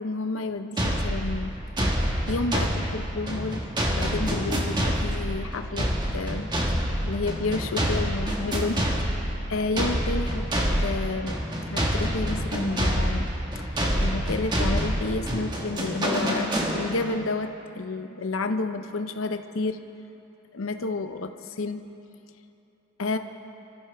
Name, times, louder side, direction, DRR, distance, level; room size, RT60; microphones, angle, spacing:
voice 1, 0.0-1.5 1.8-1.9 2.3-5.9 6.1-6.5 7.0-8.8 9.1-9.2 9.5-10.5 10.8-11.4 11.7-13.3 13.6-13.7 14.0-19.8 20.5-21.3 21.6-21.8 23.0-23.2, left 3 dB, 70° left, 7 dB, 0.7 m, -30 dB
sound 1, 0.8-17.2, equal, 20° right, 1.5 m, -27 dB
25.0 x 14.5 x 3.5 m, 2.8 s
head